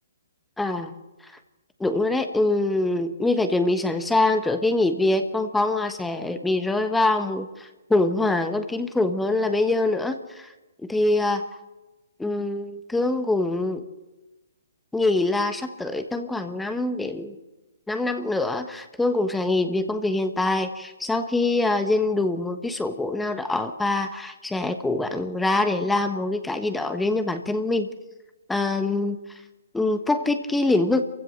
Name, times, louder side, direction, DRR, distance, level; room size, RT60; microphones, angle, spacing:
voice 1, 0.6-0.9 1.8-10.5 10.9-11.4 12.2-13.8 14.9-17.3 17.9-27.9 28.5-29.2 29.7-31.0, left 2 dB, 5° left, 7 dB, 1.2 m, -24 dB
28.0 x 15.5 x 6.5 m, 1.1 s
figure-of-eight pair, 135°, 0 cm